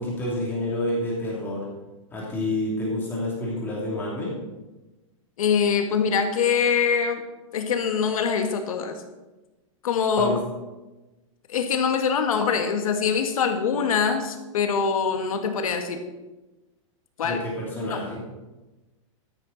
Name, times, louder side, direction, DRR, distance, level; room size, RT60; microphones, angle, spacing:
voice 1, 0.0-1.7 2.1-4.4 10.2-10.4 17.2-18.3, left 1 dB, 10° left, -5 dB, 2.9 m, -28 dB
voice 2, 5.4-7.2 7.5-9.0 9.8-10.4 11.5-16.1 17.2-17.4 17.9-18.0, left 6 dB, 85° left, 6 dB, 1.9 m, -23 dB
13.0 x 11.0 x 4.1 m, 1.1 s
supercardioid pair, 170°, 17 cm